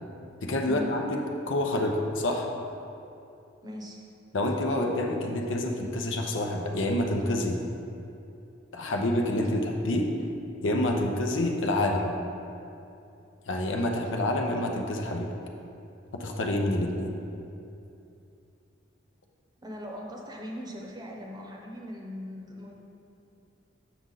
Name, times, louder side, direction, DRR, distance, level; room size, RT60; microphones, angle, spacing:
voice 1, 0.4-1.2 1.5-2.5 4.3-7.6 8.7-10.1 10.6-12.1 13.5-15.3 16.1-17.2, left 1 dB, 80° left, 2 dB, 0.8 m, -27 dB
voice 2, 3.6-4.1 19.6-22.7, left 1 dB, 20° right, 0 dB, 0.8 m, -40 dB
6.9 x 6.2 x 3.9 m, 2.7 s
head